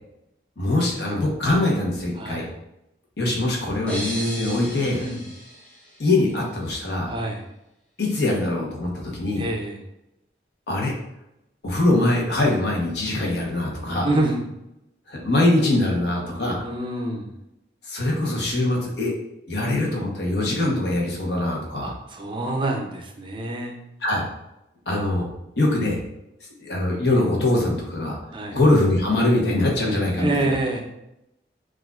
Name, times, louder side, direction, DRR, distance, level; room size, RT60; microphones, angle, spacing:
voice 1, 0.6-2.4 3.2-5.0 6.0-7.1 8.0-9.4 10.7-10.9 11.6-14.1 15.1-16.7 17.8-19.1 19.5-21.9 24.0-24.3 24.9-25.3 25.6-26.0 26.6-28.2 28.5-30.5, left 2 dB, 65° left, -1 dB, 1.0 m, -22 dB
voice 2, 2.2-2.5 4.9-5.2 7.1-7.4 9.4-9.8 14.0-14.4 16.6-17.3 21.8-23.8 28.3-28.6 30.2-30.8, right 2 dB, 30° right, 2 dB, 0.4 m, -26 dB
sound 1, 3.9-6.6, equal, 5° left, 1.4 m, -36 dB
6.2 x 2.5 x 2.4 m, 0.87 s
head